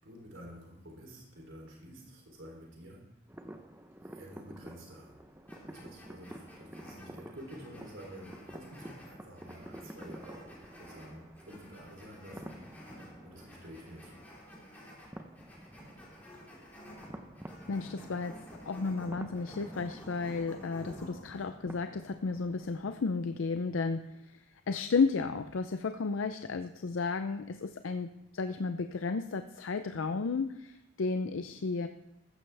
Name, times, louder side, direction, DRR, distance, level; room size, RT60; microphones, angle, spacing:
voice 1, 0.0-3.1 4.0-5.2 5.7-10.5 10.8-14.4, equal, 85° right, -1 dB, 3.3 m, -50 dB
sound 1, 3.3-22.9, right 1 dB, 10° right, 0.7 m, -50 dB
sound 2, 5.5-21.5, equal, 10° left, 3.7 m, -51 dB
voice 2, 17.7-24.4 24.7-31.9, left 4 dB, 90° left, 9 dB, 0.5 m, -33 dB
14.5 x 13.5 x 3.4 m, 0.86 s
head